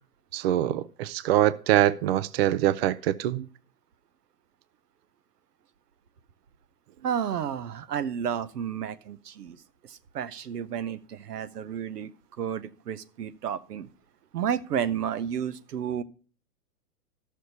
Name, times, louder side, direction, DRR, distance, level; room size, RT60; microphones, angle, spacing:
voice 1, 0.3-3.5, right 13 dB, 45° right, 0.5 m, -24 dB
voice 2, 7.0-9.6 9.9-12.1 12.4-13.9 14.3-16.0, right 8 dB, 85° right, 0.9 m, -31 dB
13.0 x 6.4 x 4.0 m
hypercardioid pair, 130°, 46 cm